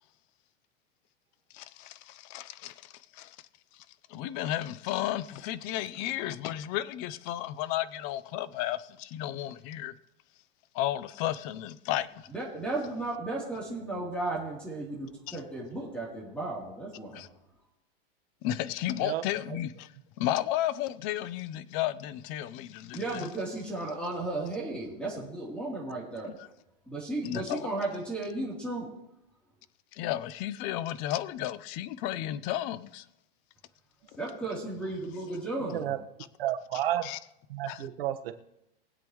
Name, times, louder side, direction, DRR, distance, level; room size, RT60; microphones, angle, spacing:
voice 1, 1.5-3.4 4.1-9.9 10.7-12.1 15.3-15.4 17.1-17.3 18.4-19.9 20.2-23.3 27.2-27.7 30.0-33.0 37.0-37.2 37.7-37.8, left 13 dB, 30° left, 0.5 m, -33 dB
voice 2, 12.3-17.3 22.9-26.4 26.9-28.9 34.2-35.9, right 2 dB, 5° left, 3.2 m, -34 dB
voice 3, 18.9-19.6 35.7-36.0 36.4-37.1 37.5-38.3, right 12 dB, 75° right, 1.4 m, -32 dB
23.5 x 8.2 x 3.1 m
supercardioid pair, 165°, 29 cm